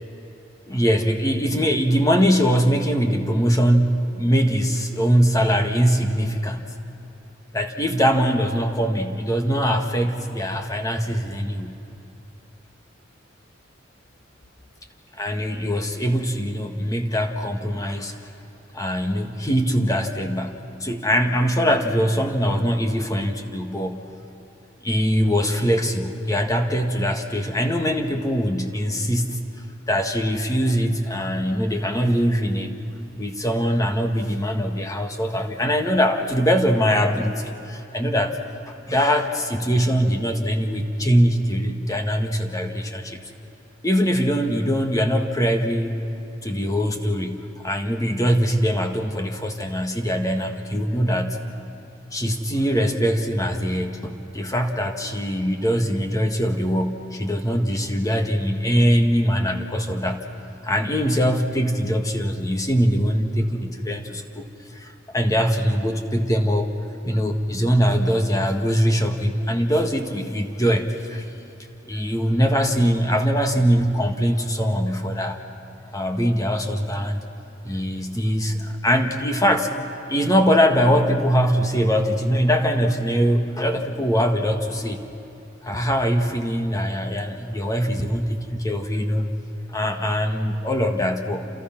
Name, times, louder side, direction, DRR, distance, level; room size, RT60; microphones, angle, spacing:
voice 1, 0.7-6.6 7.5-11.8 15.2-18.2 18.7-24.0 24.8-29.5 29.9-32.7 33.1-38.4 38.9-43.2 43.8-46.0 46.4-51.4 52.1-60.2 60.6-64.4 64.7-66.7 67.0-71.2 71.9-75.4 75.9-77.2 77.6-79.7 80.1-85.0 85.6-89.3 89.7-91.5, equal, 20° left, 4 dB, 1.7 m, -22 dB
29.5 x 27.5 x 6.0 m, 3.0 s
head